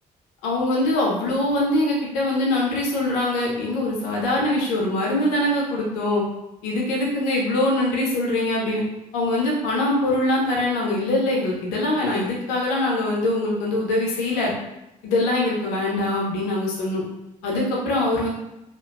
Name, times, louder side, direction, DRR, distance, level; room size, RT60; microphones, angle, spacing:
voice 1, 0.4-6.2 6.6-8.8 9.1-14.5 15.0-17.0 17.4-18.3, left 1 dB, 70° left, -2 dB, 0.6 m, -23 dB
2.8 x 2.2 x 2.3 m, 0.90 s
figure-of-eight pair, 45°, 21 cm